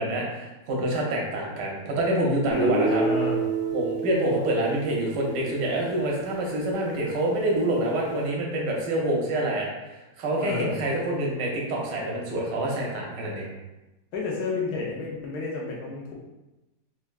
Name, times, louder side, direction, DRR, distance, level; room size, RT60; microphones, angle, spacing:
voice 1, 0.0-3.0 3.7-13.4, right 1 dB, 90° right, -2 dB, 1.4 m, -27 dB
voice 2, 2.4-3.4 10.4-10.8 14.1-16.1, left 3 dB, 75° left, -3 dB, 1.3 m, -31 dB
Guitar, 2.5-6.5, right 4 dB, 30° left, 0.9 m, -29 dB
4.4 x 2.3 x 2.3 m, 1.0 s
omnidirectional pair, 1.8 m